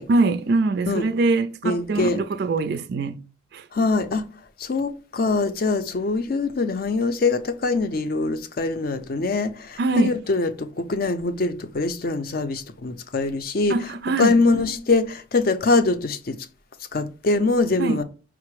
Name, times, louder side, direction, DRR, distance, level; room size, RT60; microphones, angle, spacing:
voice 1, 0.1-3.2 3.5-3.6 9.8-10.2 13.7-14.4 17.8-18.0, right 3 dB, 55° right, 0.3 m, -23 dB
voice 2, 1.6-2.2 3.7-4.2 4.6-13.8 14.2-16.4 16.9-18.0, left 3 dB, 50° left, 0.5 m, -23 dB
4.8 x 2.0 x 4.5 m
head